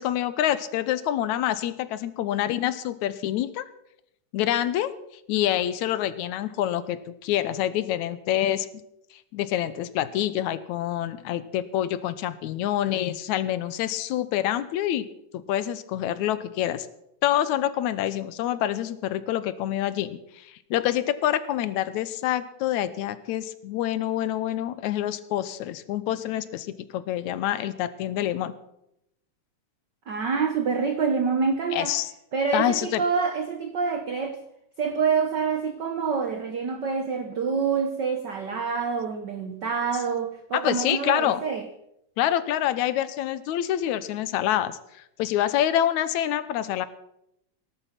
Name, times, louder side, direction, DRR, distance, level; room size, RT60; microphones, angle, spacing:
voice 1, 0.0-3.7 4.3-4.9 5.3-8.7 9.3-15.1 15.3-16.9 17.2-28.5 31.7-32.1 32.5-33.0 40.5-41.4 42.2-46.9, left 12 dB, 80° left, 14 dB, 2.1 m, -26 dB
voice 2, 30.1-31.9 32.3-34.4 34.8-41.6, right 5 dB, 75° right, 8 dB, 1.0 m, -26 dB
18.0 x 11.5 x 5.9 m, 0.80 s
omnidirectional pair, 3.4 m